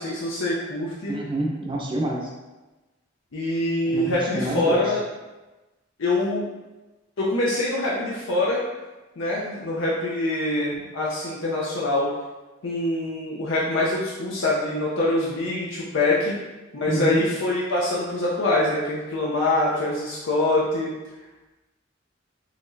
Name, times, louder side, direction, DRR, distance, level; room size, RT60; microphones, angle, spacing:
voice 1, 0.0-1.2 3.3-5.0 6.0-6.5 7.2-8.6 9.2-12.1 12.6-16.3 16.7-20.9, left 2 dB, 75° left, -5 dB, 0.6 m, -24 dB
voice 2, 1.1-2.3 3.8-4.8 16.8-17.2, right 1 dB, 25° right, -2 dB, 0.5 m, -27 dB
4.1 x 3.0 x 2.6 m, 1.1 s
head